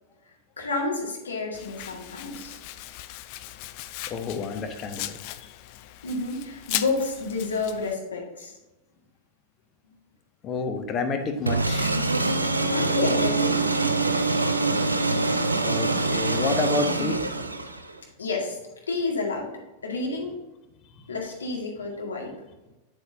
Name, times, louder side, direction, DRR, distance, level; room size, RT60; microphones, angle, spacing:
voice 1, 0.6-2.6 6.0-8.5 12.7-13.8 18.2-18.6 18.9-19.5 19.8-20.3 21.1-22.3, left 3 dB, 70° left, -1 dB, 1.9 m, -30 dB
Domestic sounds home sounds, 1.5-7.9, left 15 dB, 45° left, 0.4 m, -37 dB
voice 2, 4.1-5.1 10.4-12.0 15.6-17.2, left 4 dB, 30° left, 5 dB, 1.1 m, -29 dB
sound 1, 11.5-18.0, right 3 dB, 80° right, 0.6 m, -24 dB
8.2 x 7.9 x 2.7 m, 1.0 s
figure-of-eight pair, 90°, 0 cm